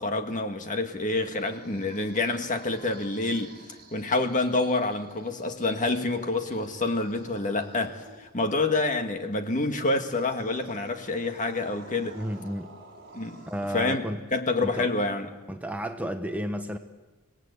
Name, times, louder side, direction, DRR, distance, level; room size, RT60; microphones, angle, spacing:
voice 1, 0.0-3.6 3.9-12.2 13.1-13.4 13.7-14.0 14.3-15.3, left 2 dB, 35° left, 6 dB, 1.7 m, -27 dB
sound 1, 1.1-8.4 10.0-13.9, right 2 dB, 55° right, 6.2 m, -52 dB
voice 2, 12.1-12.7 13.5-14.3 14.6-14.9 15.5-16.8, equal, 5° right, 6 dB, 1.0 m, -32 dB
26.0 x 18.5 x 8.2 m, 1.2 s
head